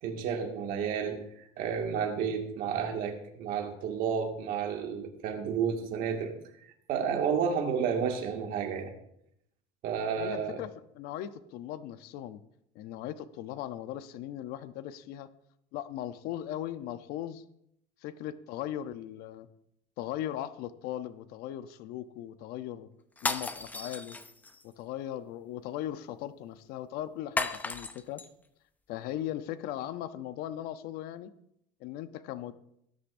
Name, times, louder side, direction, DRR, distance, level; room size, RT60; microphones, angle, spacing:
voice 1, 0.0-6.3 6.9-8.9 9.8-10.6, right 7 dB, 55° right, 2 dB, 2.1 m, -31 dB
voice 2, 10.2-12.4 12.7-15.3 15.7-17.4 18.0-19.5 20.0-22.9 23.2-24.2 24.6-28.2 28.9-31.3 31.8-32.5, left 12 dB, 60° left, 12 dB, 0.7 m, -38 dB
sound 1, 23.2-24.6 27.4-28.3, left 3 dB, 10° left, 0.5 m, -34 dB
19.0 x 10.0 x 2.6 m, 0.74 s
cardioid pair, 160°, 18 cm